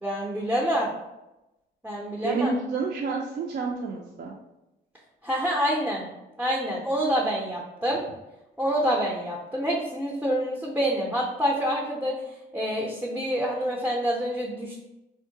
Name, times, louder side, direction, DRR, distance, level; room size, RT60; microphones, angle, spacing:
voice 1, 0.0-0.9 1.8-2.5 5.2-6.0 6.4-8.0 8.6-12.1 12.5-14.8, equal, 5° right, -2 dB, 0.5 m, -27 dB
voice 2, 2.2-4.3, right 4 dB, 60° right, 0 dB, 0.4 m, -29 dB
3.5 x 2.2 x 2.7 m, 0.95 s
cardioid pair, 90°, 20 cm